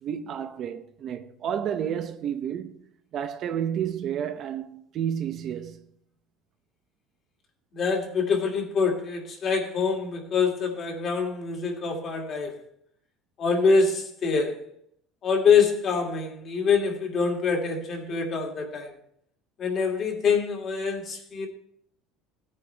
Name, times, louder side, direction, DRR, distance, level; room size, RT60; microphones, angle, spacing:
voice 1, 0.0-2.8 3.1-5.9, right 9 dB, 40° right, 0.7 m, -31 dB
voice 2, 7.7-12.6 13.4-14.6 15.2-18.9 19.6-21.5, left 5 dB, 35° left, 2.3 m, -25 dB
16.5 x 9.7 x 3.4 m
cardioid pair, 160°, 0 cm